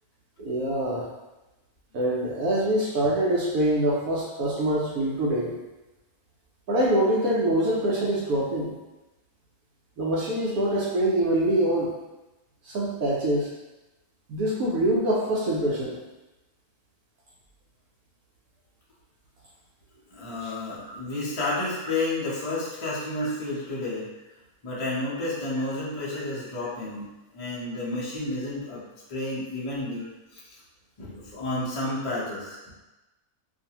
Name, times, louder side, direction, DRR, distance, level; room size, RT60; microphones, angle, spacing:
voice 1, 0.4-1.1 1.9-5.5 6.7-8.7 10.0-11.9 12.7-13.5 14.3-16.0 20.4-20.5 20.9-21.0, right 1 dB, 70° right, -4 dB, 0.9 m, -24 dB
voice 2, 20.1-24.1 24.6-27.1 27.3-28.8 29.1-30.5 31.0-32.7, left 2 dB, 35° left, -8 dB, 0.6 m, -31 dB
2.6 x 2.4 x 2.8 m, 1.0 s
omnidirectional pair, 1.6 m